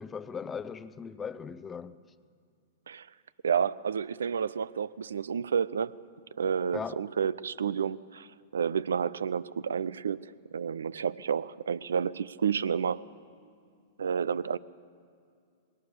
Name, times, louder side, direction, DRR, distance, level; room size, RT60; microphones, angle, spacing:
voice 1, 0.0-2.0 6.7-7.0, left 6 dB, 15° left, 0.6 m, -38 dB
voice 2, 3.4-5.9 6.4-8.3 8.5-13.0 14.0-14.6, right 7 dB, 70° right, 0.5 m, -30 dB
20.5 x 18.5 x 7.0 m
figure-of-eight pair, 105°, 0 cm